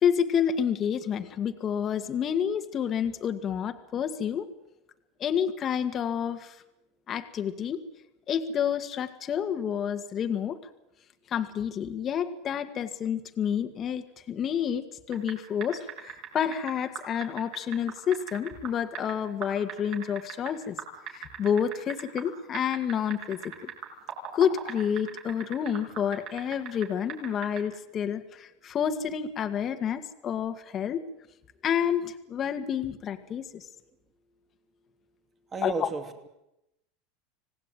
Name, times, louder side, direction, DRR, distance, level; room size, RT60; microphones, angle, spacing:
voice 1, 0.0-4.5 5.2-6.6 7.1-7.8 8.3-10.6 11.3-20.8 21.1-23.7 24.3-31.0 31.6-33.7 35.6-35.9, left 8 dB, 30° left, 8 dB, 1.9 m, -29 dB
sound 1, 15.1-15.3 15.6-19.1 19.4-20.5 20.8-22.3 22.5-26.8 27.1-27.6, right 10 dB, 50° right, 7.5 m, -38 dB
voice 2, 35.5-36.3, right 4 dB, 20° right, 7 dB, 2.6 m, -33 dB
26.0 x 18.5 x 9.3 m, 0.87 s
supercardioid pair, 145°, 0 cm